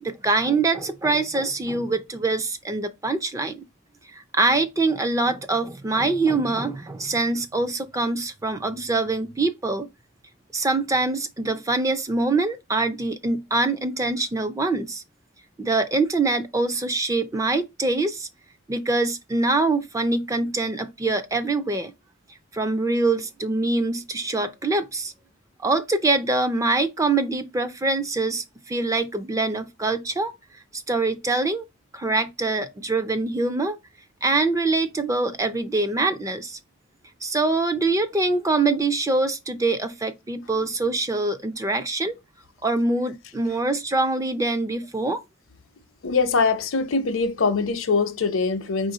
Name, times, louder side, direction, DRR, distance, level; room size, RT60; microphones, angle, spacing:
voice 1, 0.0-3.6 4.1-9.9 10.5-15.0 15.6-18.3 18.7-21.9 22.5-25.1 25.6-30.3 30.7-31.7 31.9-33.8 34.2-36.6 37.2-42.2 42.6-45.2, right 3 dB, 15° right, 0.4 m, -24 dB
voice 2, 46.0-48.9, left 4 dB, 75° left, 0.6 m, -23 dB
4.7 x 2.5 x 3.8 m
head